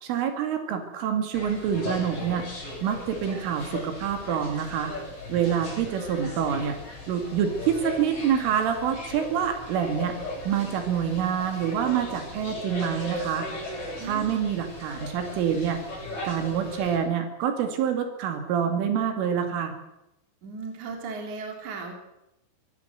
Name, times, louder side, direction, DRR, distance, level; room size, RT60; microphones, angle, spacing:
voice 1, 0.0-2.4 2.8-4.9 5.3-6.7 7.1-10.1 10.5-13.5 14.0-15.8 16.2-19.7, right 8 dB, 80° right, 6 dB, 4.8 m, -26 dB
sound 1, 1.3-17.0, left 2 dB, 30° left, 8.4 m, -38 dB
voice 2, 14.0-14.4 20.4-21.9, right 4 dB, 40° right, 3 dB, 4.5 m, -37 dB
24.5 x 16.0 x 8.0 m, 0.88 s
omnidirectional pair, 5.6 m